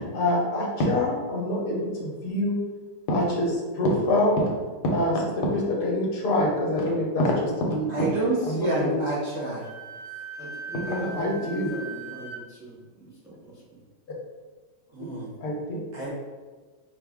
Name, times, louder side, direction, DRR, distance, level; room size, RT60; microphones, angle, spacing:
voice 1, 0.0-2.6 3.1-4.5 4.8-7.9 8.4-9.0 10.9-11.7 15.4-15.8, left 1 dB, 70° left, 1.3 m, -25 dB
voice 2, 7.9-9.6 14.9-15.3 15.9-16.1, right 2 dB, 55° right, 1.0 m, -28 dB
Wind instrument woodwind instrument, 9.6-12.4, right 3 dB, 80° right, 1.5 m, -39 dB
voice 3, 10.4-13.6, right 1 dB, 5° right, 0.4 m, -39 dB
4.9 x 2.3 x 3.5 m
omnidirectional pair, 1.9 m